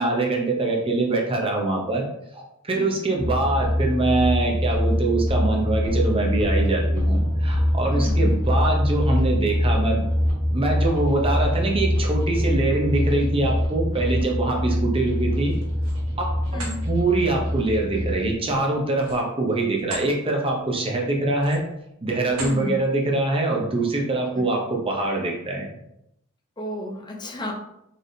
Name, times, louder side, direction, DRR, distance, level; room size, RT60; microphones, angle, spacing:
voice 1, 0.0-2.1 2.3-10.0 10.5-15.6 16.2-21.6 22.0-25.7, right 2 dB, 25° right, 0 dB, 0.7 m, -24 dB
voice 2, 2.7-3.1 7.9-8.4 16.5-16.8 22.4-22.8 26.6-27.5, left 1 dB, 20° left, 0 dB, 0.5 m, -32 dB
sound 1, 3.2-18.3, equal, 35° left, 1.1 m, -24 dB
sound 2, 10.9-18.9, equal, 65° right, 1.1 m, -43 dB
sound 3, 15.4-16.0 16.4-16.8 18.9-20.1 20.6-20.8 21.3-21.8 22.3-22.6, right 2 dB, 80° right, 1.3 m, -37 dB
4.1 x 3.3 x 2.6 m, 0.81 s
head